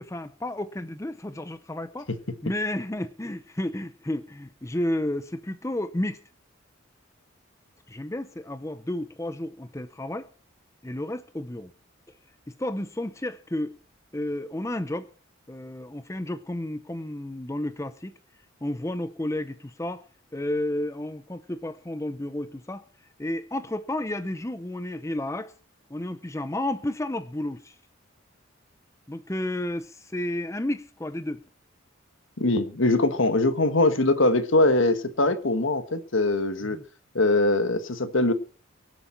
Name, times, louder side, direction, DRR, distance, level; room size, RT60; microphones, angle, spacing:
voice 1, 0.0-2.1 2.4-6.2 7.9-10.3 10.8-11.7 12.1-12.2 12.5-13.8 14.1-15.1 15.5-18.1 18.6-20.0 20.3-22.8 23.2-25.5 25.9-27.8 29.1-31.4 35.2-35.3 36.7-36.8, left 1 dB, 15° left, 0.6 m, -32 dB
voice 2, 32.4-36.8 37.1-38.3, left 2 dB, 70° left, 1.4 m, -22 dB
23.5 x 8.2 x 4.4 m
head